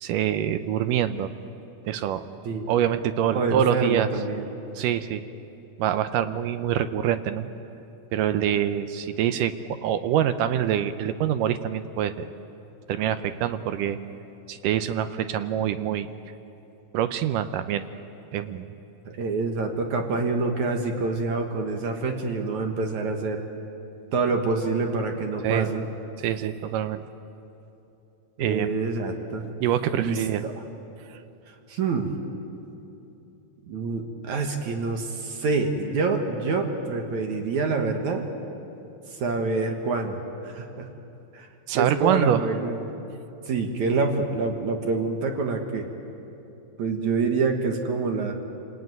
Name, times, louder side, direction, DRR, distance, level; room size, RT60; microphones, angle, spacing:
voice 1, 0.0-1.3 1.8-2.2 2.7-4.1 4.8-5.2 5.8-7.5 8.1-12.3 12.9-14.0 14.5-16.1 16.9-17.9 18.3-18.7 25.4-25.7 26.2-27.0 28.4-28.7 29.6-30.4 31.1-31.2 41.7-42.4, right 10 dB, 75° right, 10 dB, 2.1 m, -25 dB
voice 2, 3.3-4.5 19.1-23.4 24.1-25.9 28.4-29.4 29.9-30.5 31.5-32.1 33.7-38.2 39.1-40.9 41.3-42.8 43.5-45.8 46.8-48.4, right 3 dB, 60° right, 3 dB, 2.6 m, -27 dB
28.5 x 19.0 x 9.3 m, 2.9 s
omnidirectional pair, 4.2 m